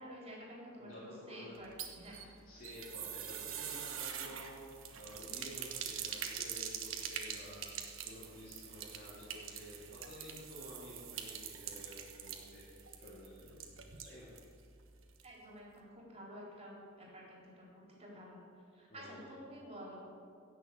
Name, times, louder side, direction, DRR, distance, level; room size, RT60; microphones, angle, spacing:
voice 1, 0.0-2.3 15.2-18.4 18.7-20.0, equal, 30° right, -4 dB, 3.9 m, -51 dB
voice 2, 0.8-1.6 2.2-12.6 13.0-13.6 14.0-14.3 18.9-19.4, left 1 dB, 45° left, -9 dB, 3.6 m, -52 dB
sound 1, 1.6-14.5 14.8-14.9 15.2-15.3, right 8 dB, 75° right, 1.4 m, -44 dB
16.5 x 7.0 x 7.7 m, 2.4 s
head